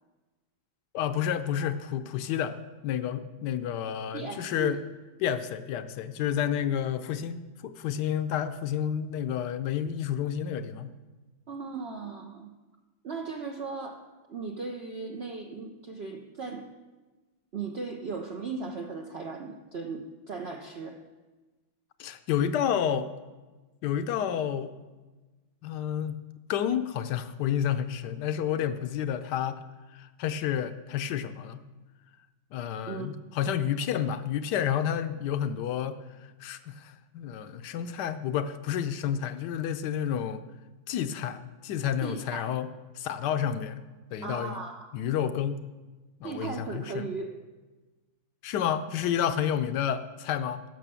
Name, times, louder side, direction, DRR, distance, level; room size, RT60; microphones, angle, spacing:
voice 1, 0.9-2.6 2.8-4.8 5.2-10.9 22.0-23.1 23.8-24.7 25.6-26.2 26.5-29.6 29.9-31.6 32.5-36.0 36.4-40.4 40.9-42.7 43.0-43.8 44.1-44.6 44.9-45.6 46.2-46.8 48.4-50.6, left 9 dB, 70° left, 11 dB, 1.1 m, -30 dB
voice 2, 4.1-4.8 11.5-12.5 13.0-16.7 17.5-21.0 32.9-33.1 42.0-42.5 44.2-44.9 46.2-47.3, right 4 dB, 80° right, 2 dB, 0.5 m, -37 dB
11.0 x 6.4 x 6.9 m, 1.2 s
omnidirectional pair, 2.1 m